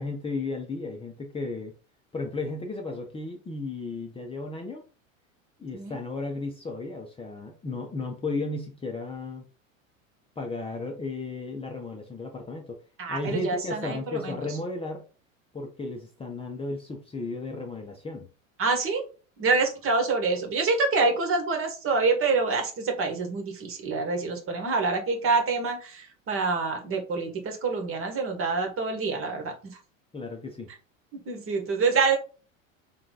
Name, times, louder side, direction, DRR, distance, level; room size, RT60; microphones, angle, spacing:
voice 1, 0.0-1.7 2.1-4.8 5.6-9.5 10.4-12.8 13.1-15.0 15.5-18.3 30.1-30.7, left 3 dB, 15° left, 2 dB, 0.8 m, -34 dB
voice 2, 13.0-14.3 18.6-19.1 19.4-29.8 31.1-32.2, right 4 dB, 35° right, 4 dB, 1.4 m, -26 dB
3.7 x 3.2 x 4.0 m, 0.35 s
hypercardioid pair, 85°, 40 cm